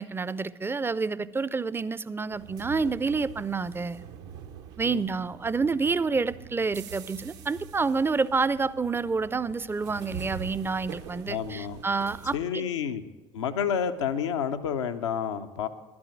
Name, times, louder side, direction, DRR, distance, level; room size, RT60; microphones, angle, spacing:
voice 1, 0.0-4.0 4.8-12.7, right 4 dB, 15° right, 18 dB, 0.4 m, -28 dB
sound 1, 2.3-12.4, right 8 dB, 75° right, 0.7 m, -44 dB
voice 2, 11.3-11.8 12.3-13.0 13.3-15.7, left 8 dB, 85° left, 8 dB, 0.6 m, -29 dB
11.5 x 6.1 x 8.7 m, 1.2 s
hypercardioid pair, 55°, 15 cm